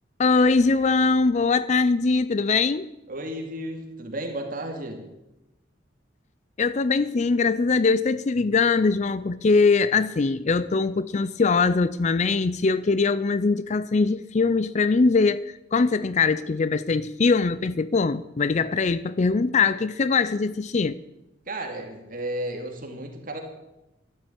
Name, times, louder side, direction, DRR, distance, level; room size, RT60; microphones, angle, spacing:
voice 1, 0.2-2.9 6.6-15.4 15.7-21.0, left 4 dB, 40° left, 0.4 m, -22 dB
voice 2, 3.1-5.0 21.5-23.4, right 1 dB, 45° right, 2.7 m, -33 dB
13.0 x 12.0 x 8.8 m
head